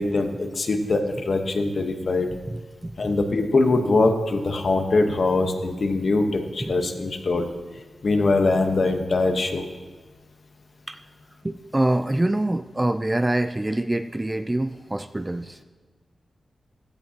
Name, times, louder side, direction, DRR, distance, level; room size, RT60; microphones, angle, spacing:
voice 1, 0.0-2.3 3.0-7.5 8.0-9.7, left 3 dB, 50° left, 5 dB, 1.1 m, -22 dB
voice 2, 2.5-3.0 6.6-6.7 10.9-11.0 11.4-15.6, right 1 dB, 15° right, 10 dB, 0.3 m, -25 dB
16.0 x 14.0 x 2.9 m, 1.4 s
wide cardioid pair, 140°, 0 cm